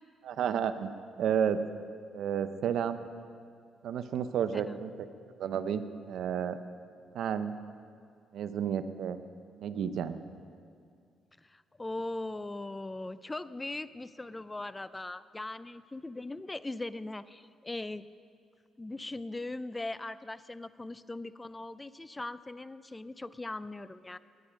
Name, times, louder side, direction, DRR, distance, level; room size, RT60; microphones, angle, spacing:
voice 1, 0.2-0.9 1.2-1.6 2.1-3.0 3.8-5.1 5.4-6.6 7.1-7.5 8.3-9.2 9.6-10.2, right 8 dB, 75° right, 11 dB, 0.7 m, -31 dB
voice 2, 11.4-18.1 18.8-24.2, left 2 dB, 15° left, 15 dB, 0.4 m, -40 dB
21.0 x 10.5 x 5.1 m, 2.2 s
cardioid pair, 90°, 0 cm